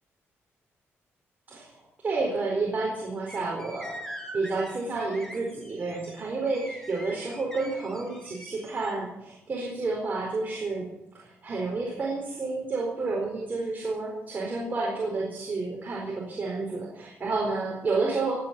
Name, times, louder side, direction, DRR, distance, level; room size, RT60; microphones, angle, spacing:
voice 1, 2.0-3.9 4.3-10.9 11.1-18.3, right 3 dB, 35° right, -3 dB, 4.4 m, -30 dB
sound 1, 3.3-8.9, equal, 10° left, 3.5 m, -44 dB
18.0 x 8.9 x 8.4 m, 0.88 s
cardioid pair, 120°, 5 cm